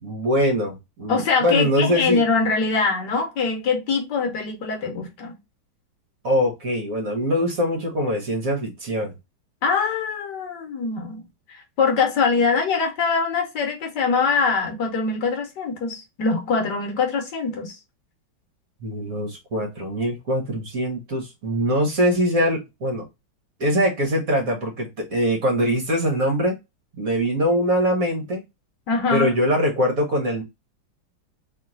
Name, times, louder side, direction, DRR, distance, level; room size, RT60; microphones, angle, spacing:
voice 1, 0.0-2.2 6.2-9.1 18.8-23.0 23.6-26.5 27.0-28.4 29.1-30.4, equal, 55° right, 1.1 m, -23 dB
voice 2, 1.1-5.4 9.6-11.2 11.5-17.8 28.9-29.3, left 4 dB, 60° left, 1.4 m, -23 dB
3.1 x 2.9 x 3.7 m
omnidirectional pair, 2.3 m